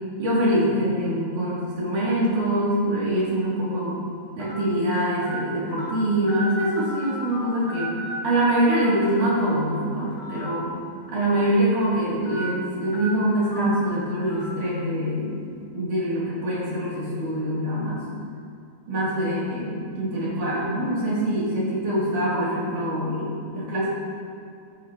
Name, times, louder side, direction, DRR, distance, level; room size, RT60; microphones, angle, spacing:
voice 1, 0.2-4.0 4.4-7.9 8.2-10.7 11.1-15.4 15.7-18.0 18.9-23.9, right 1 dB, 60° right, -8 dB, 4.7 m, -24 dB
sound 1, 2.2-2.5 3.2-3.3 4.4-4.5 5.2-5.3 5.8-5.9 6.3-7.4 7.7-8.4 8.7-8.8 10.1-10.4 10.8-10.9 12.2-12.5 12.9-13.0 13.5-13.6 14.3-14.4, right 1 dB, 45° left, 4.4 m, -36 dB
16.5 x 10.0 x 3.2 m, 2.4 s
omnidirectional pair, 4.0 m